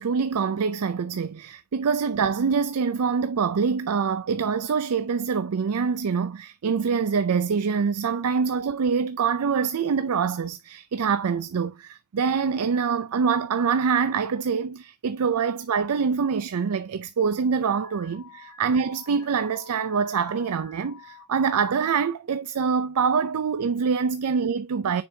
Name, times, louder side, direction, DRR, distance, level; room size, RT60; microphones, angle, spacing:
voice 1, 0.0-25.0, right 6 dB, 80° right, 0.5 m, -25 dB
Alarm, 17.8-21.2, left 5 dB, 70° left, 3.2 m, -49 dB
7.1 x 5.4 x 2.7 m
head